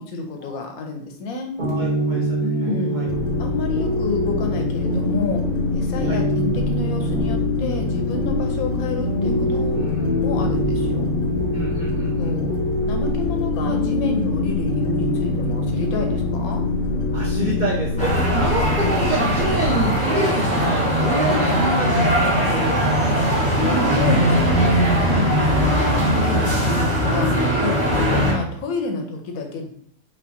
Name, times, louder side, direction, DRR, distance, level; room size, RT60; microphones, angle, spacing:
voice 1, 0.0-1.5 2.4-3.0 3.4-5.4 5.7-9.9 10.2-11.0 12.2-12.5 12.9-16.6 23.6-24.8 25.0-27.3 27.6-29.7, left 3 dB, 90° left, 3 dB, 1.1 m, -29 dB
sound 1, 1.6-21.2, equal, 45° right, 0.8 m, -26 dB
voice 2, 1.6-2.3 2.6-3.1 6.1-6.2 9.8-10.5 11.5-12.4 17.1-22.8 25.4-25.5, right 1 dB, 85° right, -2 dB, 0.4 m, -28 dB
sound 2, 3.1-20.0, left 3 dB, 65° left, 0.6 m, -25 dB
sound 3, 18.0-28.3, equal, 5° left, 0.7 m, -19 dB
3.4 x 3.1 x 2.6 m, 0.64 s
omnidirectional pair, 1.5 m